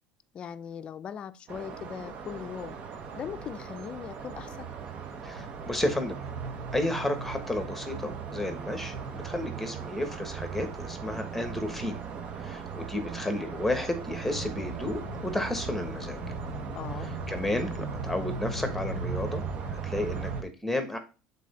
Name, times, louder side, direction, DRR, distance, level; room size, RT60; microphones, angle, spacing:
voice 1, 0.3-2.8 3.2-4.7 16.7-17.1, left 8 dB, 35° left, 0.5 m, -39 dB
sound 1, 1.5-20.4, right 6 dB, 45° right, 1.0 m, -37 dB
voice 2, 5.2-6.2 6.7-12.0 12.4-16.2 17.0-19.4 19.7-21.0, left 1 dB, 5° left, 1.2 m, -32 dB
sound 2, 14.2-19.6, left 11 dB, 90° left, 0.5 m, -43 dB
7.5 x 4.1 x 4.2 m
cardioid pair, 130°, 3 cm